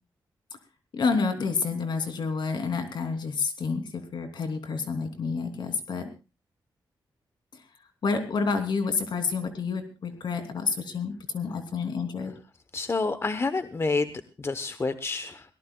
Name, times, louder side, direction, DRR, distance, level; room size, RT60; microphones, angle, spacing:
voice 1, 0.9-6.1 8.0-12.3, left 4 dB, 70° left, 7 dB, 3.0 m, -29 dB
voice 2, 12.7-15.5, left 3 dB, 35° left, 12 dB, 0.9 m, -29 dB
22.5 x 18.0 x 2.3 m, 0.30 s
cardioid pair, 85°, 8 cm